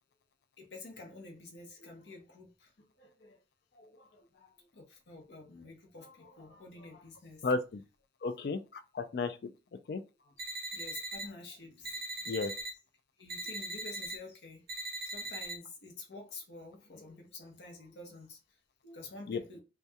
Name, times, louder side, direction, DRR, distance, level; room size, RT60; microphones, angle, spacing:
voice 1, 0.6-3.4 3.7-7.5 10.2-10.4 10.7-12.0 13.2-14.7 15.0-19.6, left 2 dB, 85° left, 0.7 m, -50 dB
voice 2, 7.4-7.8 8.2-9.4 9.9-10.0 12.3-12.5 19.3-19.4, left 3 dB, 60° left, 0.3 m, -33 dB
sound 1, 10.4-11.3 11.8-12.7 13.3-14.2 14.7-15.5, right 2 dB, 55° right, 0.7 m, -39 dB
2.7 x 2.2 x 2.2 m
head